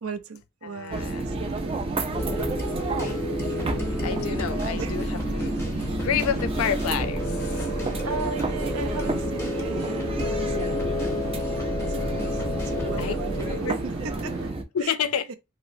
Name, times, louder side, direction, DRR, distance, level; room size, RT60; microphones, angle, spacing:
voice 1, 0.0-1.9 4.7-5.0 5.8-6.0 7.9-11.3 11.7-14.5 14.8-14.9 15.3-15.4, right 4 dB, 85° right, 0.5 m, -37 dB
voice 2, 0.6-1.3 2.9-3.7 4.0-7.7 12.1-12.2 13.0-13.1 13.5-13.8 14.7-15.3, left 8 dB, 90° left, 0.4 m, -30 dB
sound 1, 0.9-14.6, right 3 dB, 25° right, 0.4 m, -30 dB
sound 2, 0.9-14.5, right 1 dB, 70° right, 1.0 m, -40 dB
sound 3, 2.1-13.6, left 2 dB, 10° left, 0.6 m, -31 dB
3.0 x 2.9 x 2.5 m
head